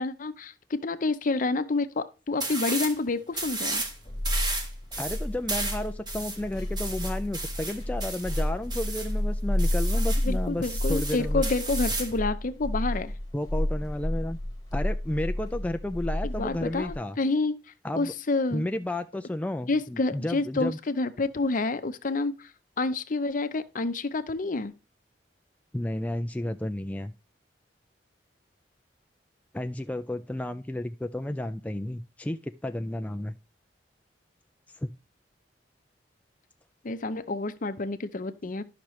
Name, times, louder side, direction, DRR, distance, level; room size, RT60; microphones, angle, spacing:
voice 1, 0.0-3.8 10.2-13.1 16.2-17.6 17.9-18.6 19.7-22.5 22.8-24.7 36.8-38.6, left 3 dB, 50° left, 0.7 m, -28 dB
sound 1, 2.4-3.0 3.3-3.9 4.2-9.1 9.6-10.3 10.6-12.2, right 2 dB, 25° right, 1.7 m, -33 dB
sound 2, 3.5-17.0, left 1 dB, 25° left, 1.3 m, -30 dB
voice 2, 5.0-11.4 13.3-14.4 14.7-17.2 17.8-18.1 18.5-20.8 25.7-27.1 29.5-33.3 34.7-34.9, left 1 dB, 10° left, 0.3 m, -32 dB
12.0 x 5.9 x 3.1 m
head